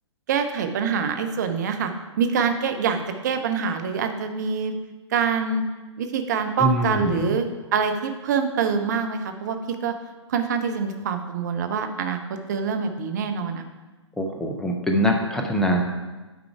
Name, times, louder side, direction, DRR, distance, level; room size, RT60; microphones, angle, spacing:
voice 1, 0.3-1.9 2.2-4.7 5.1-5.7 6.0-9.9 10.3-13.6, right 6 dB, 35° right, 6 dB, 0.6 m, -25 dB
voice 2, 6.6-7.4 14.2-15.8, equal, 5° left, 2 dB, 0.5 m, -23 dB
9.1 x 3.7 x 4.6 m, 1.2 s
figure-of-eight pair, 125°, 16 cm